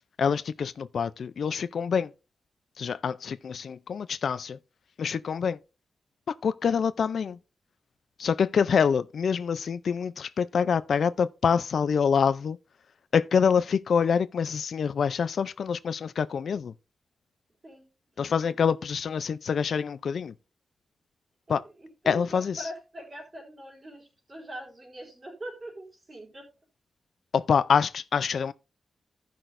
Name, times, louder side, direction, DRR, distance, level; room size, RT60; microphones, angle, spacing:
voice 1, 0.2-2.1 2.8-4.6 5.0-5.6 6.3-7.4 8.2-12.6 13.1-16.7 18.2-20.3 21.5-21.6 22.1-22.7 27.3-28.5, left 6 dB, 65° left, 0.4 m, -26 dB
voice 2, 22.0-26.5, right 1 dB, 30° right, 3.7 m, -42 dB
15.5 x 6.0 x 2.5 m
wide cardioid pair, 175°, 0 cm